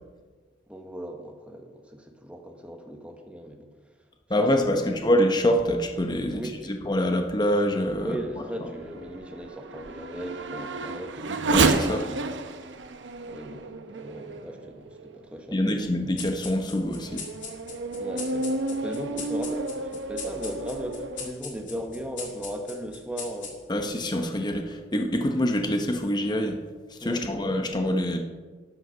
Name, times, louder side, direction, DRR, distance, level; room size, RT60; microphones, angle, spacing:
voice 1, 0.7-3.7 4.5-5.0 6.3-6.8 8.0-11.3 13.3-15.8 18.0-23.6 27.0-27.6, equal, 5° right, 3 dB, 1.2 m, -37 dB
voice 2, 4.3-6.4 6.9-8.2 11.5-12.0 15.5-17.2 23.7-26.6 27.0-28.2, left 1 dB, 25° left, 4 dB, 0.9 m, -25 dB
Race car auto racing / Accelerating revving vroom, 7.3-15.2 15.8-15.9 16.5-21.3, right 3 dB, 75° right, 0.8 m, -31 dB
sound 1, 16.2-23.9, left 6 dB, 85° left, 2.5 m, -41 dB
12.0 x 8.0 x 5.5 m, 1.4 s
head